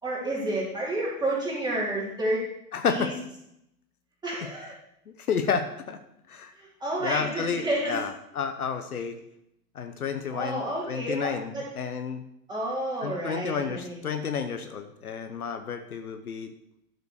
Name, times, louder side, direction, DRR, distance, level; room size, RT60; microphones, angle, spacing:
voice 1, 0.0-2.5 2.8-3.1 4.2-4.7 6.6-8.0 8.9-9.0 10.3-11.6 12.5-14.2, right 1 dB, 10° right, -5 dB, 3.7 m, -30 dB
voice 2, 2.7-3.1 4.4-4.5 5.2-6.0 6.3-6.5 7.0-9.2 9.7-12.2 13.0-16.5, left 6 dB, 65° left, 8 dB, 1.1 m, -31 dB
12.0 x 6.9 x 4.8 m, 0.79 s
figure-of-eight pair, 105°, 48 cm